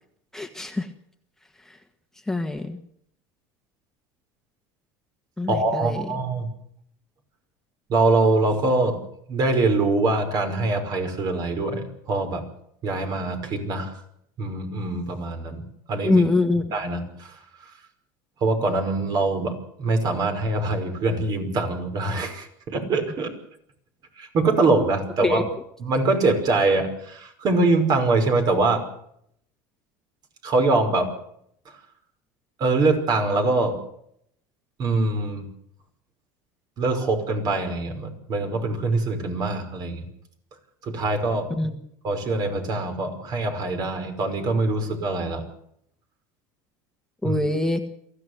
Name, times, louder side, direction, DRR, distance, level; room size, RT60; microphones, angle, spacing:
voice 1, 0.3-0.9 1.6-1.8 2.3-2.8 5.4-6.1 16.0-16.7 25.2-25.5 41.5-41.8 47.2-47.8, left 2 dB, 5° left, 5 dB, 1.7 m, -24 dB
voice 2, 5.5-6.5 7.9-9.0 9.3-12.4 12.8-14.0 14.4-15.6 15.9-16.2 16.7-17.4 18.4-23.3 24.2-25.4 25.8-28.8 30.4-31.1 32.6-33.8 34.8-35.5 36.8-40.0 40.8-41.6 42.0-45.4 47.2-47.4, right 3 dB, 45° right, 6 dB, 5.4 m, -23 dB
23.0 x 15.0 x 8.2 m, 0.71 s
supercardioid pair, 115°, 9 cm